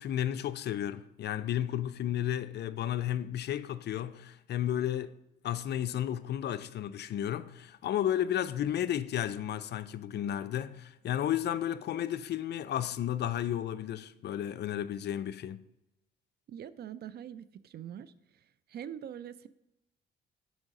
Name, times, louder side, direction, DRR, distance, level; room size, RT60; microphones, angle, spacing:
voice 1, 0.0-5.1 5.4-15.6, left 11 dB, 55° left, 0.4 m, -33 dB
voice 2, 16.5-18.1 18.7-19.5, right 9 dB, 55° right, 0.4 m, -43 dB
6.3 x 4.8 x 5.2 m
cardioid pair, 90°, 20 cm